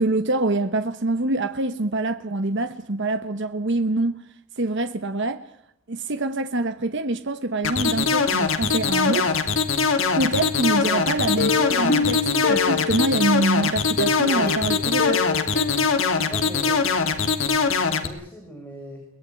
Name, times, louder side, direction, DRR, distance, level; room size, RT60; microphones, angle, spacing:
voice 1, 0.0-4.2 4.6-5.4 5.9-9.4 10.1-15.2, right 2 dB, 55° right, 1.1 m, -25 dB
sound 1, 7.6-18.1, left 5 dB, 65° left, 2.5 m, -22 dB
Plucked string instrument, 11.4-13.3 14.0-16.8 17.1-17.2 17.5-17.6, left 4 dB, 50° left, 1.5 m, -28 dB
voice 2, 16.0-16.9 17.9-19.1, right 1 dB, 10° left, 4.8 m, -39 dB
23.0 x 19.0 x 9.1 m
head